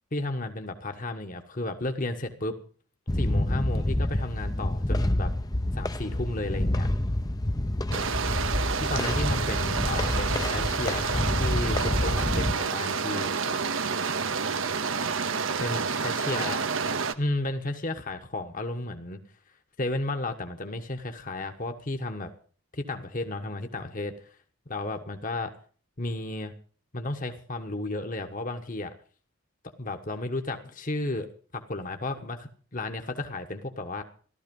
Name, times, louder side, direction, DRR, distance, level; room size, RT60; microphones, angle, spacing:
voice 1, 0.1-2.6 3.1-5.3 5.7-6.9 8.7-13.6 15.6-16.6 17.2-19.2 19.8-22.3 22.7-24.1 24.7-25.5 26.0-26.5 26.9-28.9 29.8-34.0, left 2 dB, 40° left, 6 dB, 1.3 m, -33 dB
sound 1, 3.1-12.5, left 1 dB, 15° left, 0.7 m, -28 dB
sound 2, 7.9-17.1, right 5 dB, 60° right, 0.9 m, -29 dB
15.0 x 13.0 x 5.4 m, 0.43 s
head